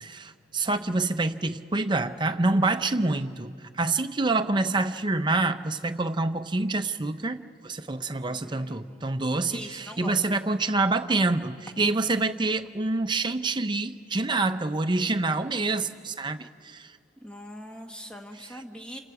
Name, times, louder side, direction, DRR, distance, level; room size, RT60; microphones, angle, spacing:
voice 1, 0.0-16.9, right 3 dB, 25° right, 9 dB, 0.7 m, -27 dB
voice 2, 8.3-9.1 9.5-10.2 17.2-19.0, equal, 5° left, 3 dB, 1.4 m, -42 dB
29.0 x 27.5 x 4.8 m, 2.3 s
head